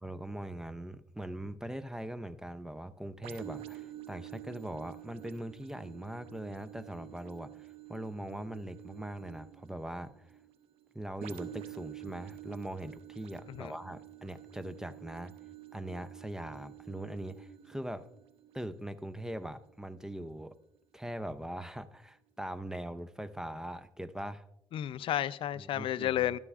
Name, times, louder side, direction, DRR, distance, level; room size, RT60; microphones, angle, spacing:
voice 1, 0.0-10.3 10.9-15.3 15.7-18.1 18.5-20.5 20.9-24.4 25.6-26.4, right 1 dB, 5° right, 0.5 m, -41 dB
sound 1, 3.2-20.8 21.3-21.4, right 14 dB, 90° right, 0.8 m, -50 dB
voice 2, 24.7-26.4, left 12 dB, 65° left, 0.4 m, -32 dB
13.0 x 12.0 x 2.4 m
cardioid pair, 95°, 10 cm